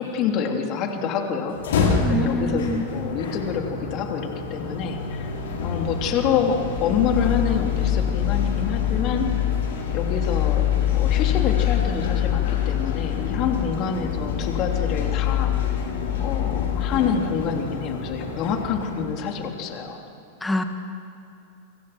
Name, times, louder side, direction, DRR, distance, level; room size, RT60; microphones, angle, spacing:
voice 1, 0.0-5.3 5.6-9.3 9.9-10.6 10.9-15.5 16.2-20.0, left 6 dB, 35° left, 3 dB, 3.2 m, -27 dB
sound 1, 1.5-19.6, left 8 dB, 60° left, 4.0 m, -25 dB
voice 2, 2.0-2.9 20.4-20.6, left 1 dB, 5° left, 6 dB, 2.0 m, -26 dB
29.5 x 26.0 x 6.0 m, 2.8 s
figure-of-eight pair, 90°, 0 cm